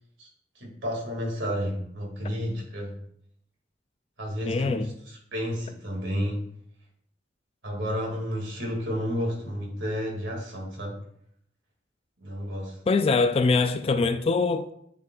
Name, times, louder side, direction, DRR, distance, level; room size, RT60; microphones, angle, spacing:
voice 1, 0.6-3.0 4.2-6.4 7.6-11.0 12.2-12.8, equal, 80° right, 2.2 m, -31 dB
voice 2, 4.5-4.9 12.9-14.7, left 4 dB, 35° left, 0.3 m, -23 dB
9.5 x 5.3 x 2.4 m
head